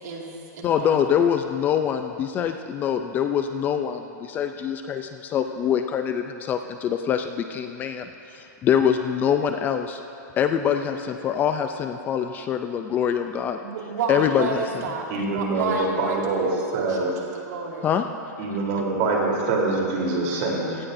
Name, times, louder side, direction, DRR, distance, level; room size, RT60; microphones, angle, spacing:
voice 1, 0.0-1.1 13.6-15.1 15.3-17.9, right 4 dB, 65° right, -2 dB, 2.3 m, -31 dB
voice 2, 0.6-10.0 10.4-13.6 14.1-14.8 17.8-18.1, left 8 dB, 20° left, 7 dB, 0.4 m, -24 dB
voice 3, 15.1-16.5 16.7-17.1 18.4-20.8, right 3 dB, 45° right, -3 dB, 3.5 m, -24 dB
17.5 x 17.0 x 2.6 m, 2.7 s
supercardioid pair, 155°, 10 cm